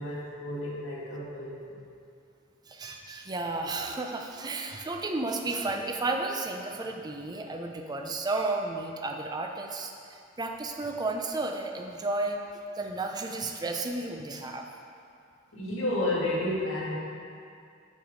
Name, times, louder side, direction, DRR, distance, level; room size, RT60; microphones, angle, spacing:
voice 1, 0.0-1.8 15.5-16.9, left 1 dB, 70° left, -7 dB, 2.0 m, -31 dB
voice 2, 2.7-12.4 12.7-14.7, right 2 dB, 20° right, 3 dB, 0.4 m, -33 dB
6.5 x 6.2 x 5.0 m, 2.5 s
head